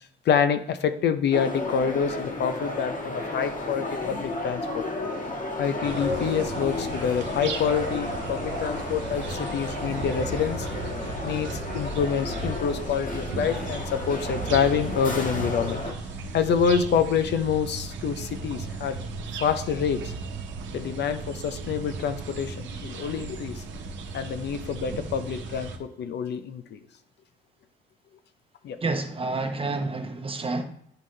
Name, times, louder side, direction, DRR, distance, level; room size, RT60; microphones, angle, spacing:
voice 1, 0.0-4.8 5.6-10.7 11.2-15.8 16.3-19.0 19.4-20.1 20.7-23.6 24.1-26.8 28.6-28.8, left 7 dB, 65° left, 0.6 m, -27 dB
sound 1, 1.3-15.9, left 2 dB, 45° left, 1.6 m, -33 dB
sound 2, 5.8-25.8, right 3 dB, 80° right, 0.9 m, -36 dB
voice 2, 28.8-30.6, right 3 dB, 30° right, 1.0 m, -29 dB
10.0 x 3.7 x 3.2 m
cardioid pair, 75°, 19 cm